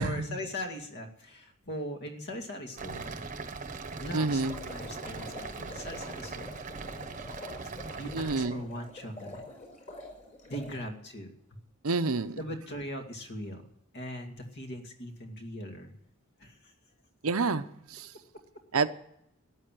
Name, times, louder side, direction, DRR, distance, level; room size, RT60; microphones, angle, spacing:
voice 1, 0.0-3.2 4.0-6.6 7.6-9.4 10.5-11.3 12.4-13.6 13.9-15.9 16.4-16.7, equal, 50° left, 4 dB, 2.3 m, -40 dB
sound 1, 2.8-8.5, right 4 dB, 35° right, 1.1 m, -40 dB
voice 2, 4.1-4.5 8.1-8.5 11.8-12.4 17.2-17.6 17.9-18.1 18.7-18.9, right 4 dB, 75° right, 11 dB, 0.8 m, -27 dB
sound 2, 4.3-10.8, left 1 dB, 30° left, 4.8 m, -46 dB
13.5 x 9.0 x 9.1 m, 0.75 s
head